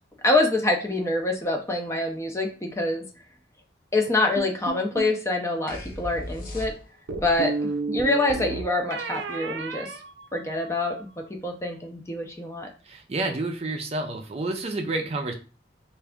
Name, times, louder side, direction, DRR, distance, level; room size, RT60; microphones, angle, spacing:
voice 1, 0.2-3.1 3.9-6.8 7.2-9.9 10.3-12.7, left 2 dB, 15° left, 3 dB, 0.6 m, -26 dB
sound 1, 4.4-5.2 7.1-10.8, right 3 dB, 85° right, 0.5 m, -32 dB
sound 2, 5.7-7.2, equal, 50° left, 0.8 m, -37 dB
voice 2, 12.8-15.3, right 2 dB, 35° right, 3 dB, 0.5 m, -29 dB
3.4 x 2.5 x 3.5 m, 0.35 s
head